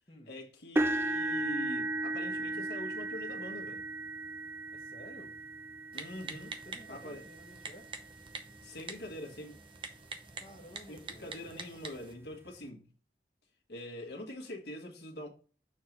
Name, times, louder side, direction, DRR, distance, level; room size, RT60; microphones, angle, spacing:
voice 1, 0.3-3.8 5.9-6.5 6.9-7.2 8.6-9.6 10.9-12.8 13.7-15.3, left 1 dB, 70° left, 1.5 m, -44 dB
sound 1, 0.8-8.8 9.4-9.7 10.1-10.2 11.6-11.7, right 2 dB, 15° right, 0.3 m, -36 dB
voice 2, 4.7-5.4 6.6-7.9 10.4-11.5, equal, 30° left, 1.1 m, -53 dB
Typing, 5.9-12.1, right 4 dB, 30° right, 0.7 m, -46 dB
6.5 x 3.7 x 5.9 m
head